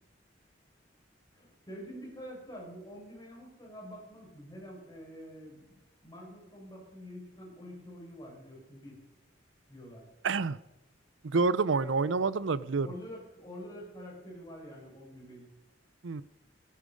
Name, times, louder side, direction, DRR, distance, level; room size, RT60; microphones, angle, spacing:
voice 1, 1.3-9.0 9.7-10.0 12.8-15.5, equal, 20° left, -2 dB, 5.9 m, -47 dB
voice 2, 10.2-10.6 11.2-12.9 16.0-16.2, right 4 dB, 80° right, 18 dB, 0.6 m, -28 dB
19.0 x 9.9 x 5.2 m, 0.99 s
head